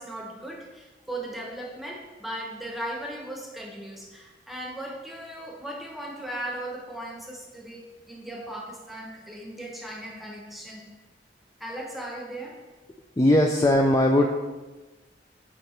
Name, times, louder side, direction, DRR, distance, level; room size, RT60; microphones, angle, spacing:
voice 1, 0.0-10.9 11.6-12.6, right 1 dB, ahead, -1 dB, 0.9 m, -37 dB
voice 2, 13.2-14.3, left 1 dB, 20° left, 1 dB, 0.3 m, -19 dB
8.7 x 3.3 x 4.3 m, 1.2 s
head